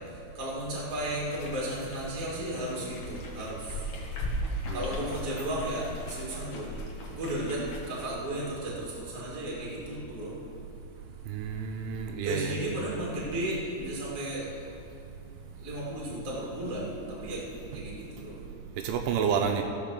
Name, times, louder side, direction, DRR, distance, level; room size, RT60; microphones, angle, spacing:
voice 1, 0.1-3.8 4.7-6.7 7.1-10.3 12.2-14.5 15.6-17.4 17.7-18.4, right 1 dB, 25° right, -5 dB, 1.7 m, -34 dB
sound 1, 1.2-8.1, left 1 dB, 65° left, 1.7 m, -38 dB
voice 2, 11.3-12.6 18.8-19.6, right 7 dB, 80° right, 4 dB, 3.1 m, -29 dB
16.5 x 6.0 x 6.7 m, 2.5 s
omnidirectional pair, 5.8 m